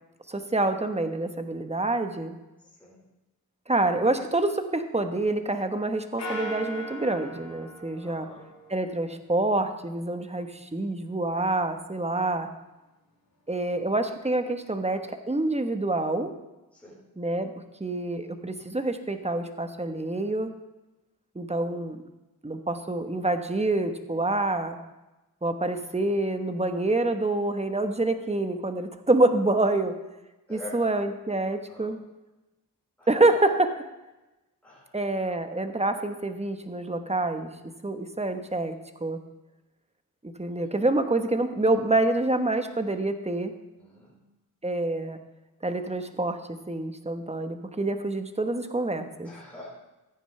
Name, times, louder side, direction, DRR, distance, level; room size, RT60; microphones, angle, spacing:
voice 1, 0.3-2.4 3.7-8.3 8.7-12.5 13.5-16.3 17.2-20.5 21.3-22.0 22.4-24.8 25.4-30.0 30.5-32.0 33.1-33.8 34.9-37.5 37.8-39.2 40.4-43.5 44.6-45.2 45.6-49.3, right 2 dB, 15° right, 7 dB, 1.1 m, -27 dB
sound 1, 6.2-8.9, right 1 dB, 75° left, 3.7 m, -38 dB
voice 2, 8.0-8.5 16.7-17.0 30.5-31.0 31.7-31.9 33.0-33.1 34.6-35.0 40.5-40.7 43.8-44.2 49.2-49.7, left 1 dB, 5° left, -7 dB, 4.6 m, -45 dB
14.0 x 9.5 x 3.3 m, 1.0 s
cardioid pair, 50°, 39 cm